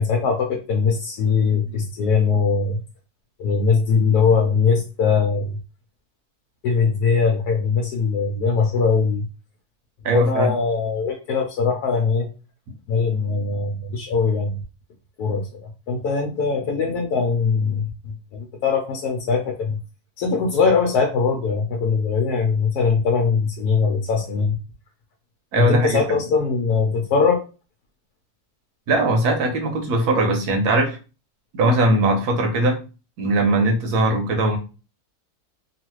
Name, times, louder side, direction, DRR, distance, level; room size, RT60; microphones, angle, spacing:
voice 1, 0.0-2.8 3.4-5.6 6.6-9.2 10.1-12.3 12.9-14.6 15.2-17.9 18.3-19.8 20.2-24.6 25.6-27.4, left 5 dB, 80° left, 2 dB, 1.2 m, -21 dB
voice 2, 10.0-10.5 25.5-26.2 28.9-31.0 31.5-32.8 33.2-34.6, right 1 dB, 75° right, 4 dB, 1.3 m, -20 dB
3.1 x 2.4 x 3.0 m, 0.32 s
omnidirectional pair, 1.7 m